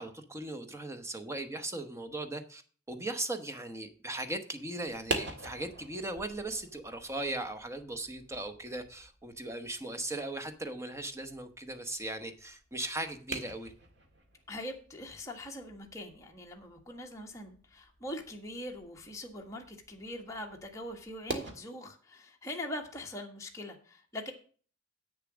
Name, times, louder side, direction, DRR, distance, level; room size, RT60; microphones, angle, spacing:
voice 1, 0.0-2.6 2.9-13.7, right 2 dB, 15° right, 8 dB, 1.0 m, -38 dB
sound 1, 4.8-21.5, right 2 dB, 60° right, 1.8 m, -45 dB
voice 2, 14.5-24.3, left 1 dB, 15° left, 0 dB, 1.5 m, -42 dB
8.3 x 6.9 x 6.1 m, 0.42 s
head